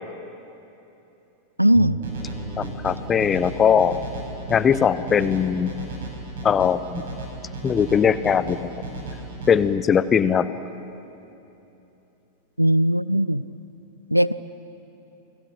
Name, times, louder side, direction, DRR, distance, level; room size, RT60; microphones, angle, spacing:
voice 1, 1.6-2.0 12.6-13.4 14.1-14.3, equal, 90° right, 17 dB, 0.5 m, -18 dB
sound 1, 1.7-9.5, right 2 dB, 15° right, 7.2 m, -42 dB
sound 2, 2.0-9.5, right 2 dB, 60° right, 6.0 m, -35 dB
voice 2, 2.6-4.0 4.5-5.7 6.4-7.0 7.6-8.7 9.5-10.5, left 7 dB, 20° left, 15 dB, 1.0 m, -20 dB
29.0 x 21.5 x 7.9 m, 2.9 s
figure-of-eight pair, 90°, 0 cm